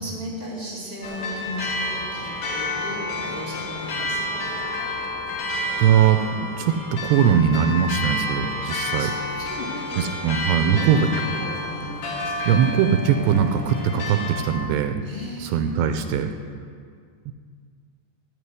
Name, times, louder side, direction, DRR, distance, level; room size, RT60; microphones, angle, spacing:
voice 1, 0.0-4.5 8.6-10.1 10.5-12.6 15.0-15.6, left 1 dB, 30° left, -5 dB, 0.9 m, -35 dB
sound 1, 1.0-14.5, left 1 dB, 65° left, 3.0 m, -30 dB
voice 2, 5.8-9.1 9.9-11.1 12.5-15.0 15.4-16.3 17.3-17.4, right 8 dB, 80° right, 7 dB, 2.7 m, -21 dB
15.0 x 5.3 x 9.6 m, 2.1 s
omnidirectional pair, 5.1 m